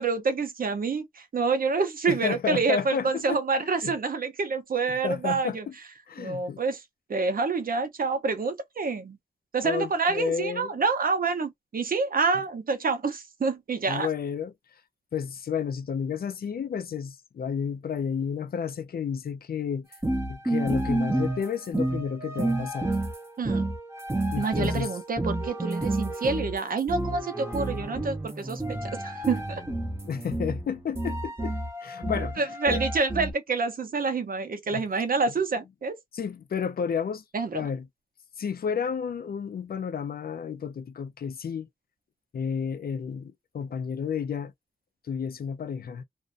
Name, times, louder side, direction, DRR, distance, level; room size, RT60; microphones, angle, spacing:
voice 1, 0.0-5.7 6.2-6.8 7.1-9.2 9.5-14.1 23.4-23.7 24.4-29.6 32.4-36.0 37.3-37.7, right 4 dB, 65° right, 0.7 m, -27 dB
voice 2, 2.1-3.4 3.8-3.9 5.0-5.7 6.1-6.6 9.6-10.8 13.9-14.5 15.1-19.9 20.3-22.9 24.3-24.9 30.0-32.8 34.7-34.8 36.1-37.2 37.5-37.9 38.4-41.7 42.3-44.5 45.1-46.0, left 7 dB, 75° left, 0.4 m, -31 dB
sound 1, 19.9-33.3, right 1 dB, 15° right, 0.7 m, -30 dB
2.5 x 2.1 x 2.4 m
wide cardioid pair, 120°, 16 cm